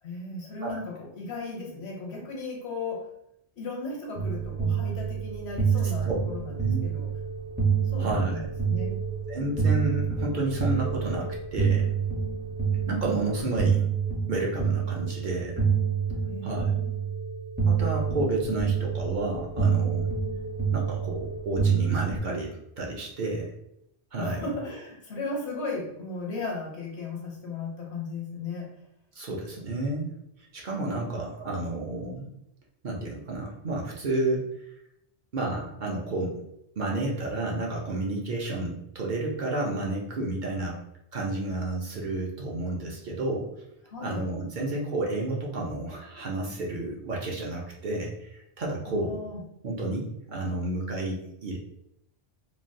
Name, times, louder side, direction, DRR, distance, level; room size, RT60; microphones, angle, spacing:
voice 1, 0.0-3.1 3.6-7.1 7.9-9.0 16.3-16.9 24.2-28.8 43.9-44.3 48.8-49.4, left 3 dB, 75° left, 0 dB, 1.1 m, -36 dB
sound 1, 4.2-22.2, right 6 dB, 15° right, 0.4 m, -27 dB
voice 2, 8.0-8.5 9.3-11.9 12.9-13.8 14.3-15.7 16.4-16.7 17.6-20.1 20.7-23.5 24.1-24.4 29.1-30.1 30.5-32.3 32.8-34.5 35.3-36.4 36.8-40.8 41.1-43.5 44.0-49.2 49.6-51.6, right 2 dB, 55° right, -2 dB, 0.7 m, -31 dB
3.2 x 2.2 x 2.5 m, 0.80 s
omnidirectional pair, 1.1 m